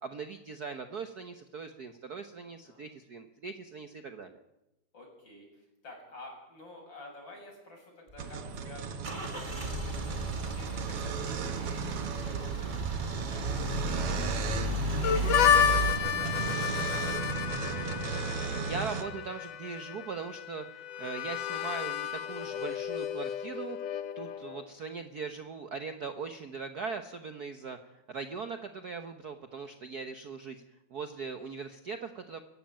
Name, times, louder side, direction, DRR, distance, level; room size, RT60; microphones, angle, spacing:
voice 1, 0.0-4.4 18.6-23.8 24.2-30.6 30.9-32.4, right 5 dB, 70° right, 8 dB, 0.8 m, -40 dB
voice 2, 4.9-10.2 10.4-12.8 13.2-17.2 24.2-24.5, left 1 dB, 40° left, 0 dB, 7.7 m, -51 dB
Car / Engine starting / Idling, 8.1-15.9, right 2 dB, 15° right, 2.2 m, -34 dB
sound 1, 8.2-19.0, right 5 dB, 55° right, 2.2 m, -35 dB
Harmonica, 15.0-24.6, left 9 dB, 65° left, 2.3 m, -31 dB
23.5 x 14.5 x 9.0 m, 0.93 s
omnidirectional pair, 3.3 m